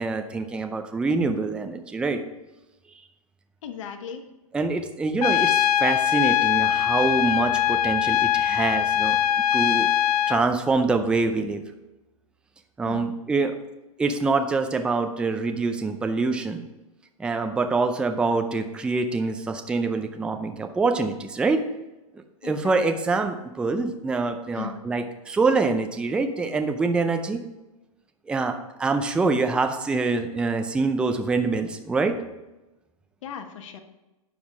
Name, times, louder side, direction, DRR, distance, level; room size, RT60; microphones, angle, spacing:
voice 1, 0.0-2.2 4.5-9.2 9.5-9.9 10.3-11.6 12.8-13.5 14.0-16.6 17.2-21.6 22.4-27.4 28.3-32.2, right 3 dB, 5° right, 7 dB, 0.5 m, -25 dB
voice 2, 3.6-4.2 12.8-13.1 22.4-22.8 24.5-24.8 33.2-33.8, left 7 dB, 55° left, 6 dB, 1.4 m, -37 dB
Trumpet, 5.2-10.4, left 11 dB, 85° left, 0.4 m, -22 dB
9.3 x 7.1 x 4.8 m, 1.0 s
hypercardioid pair, 140°, 19 cm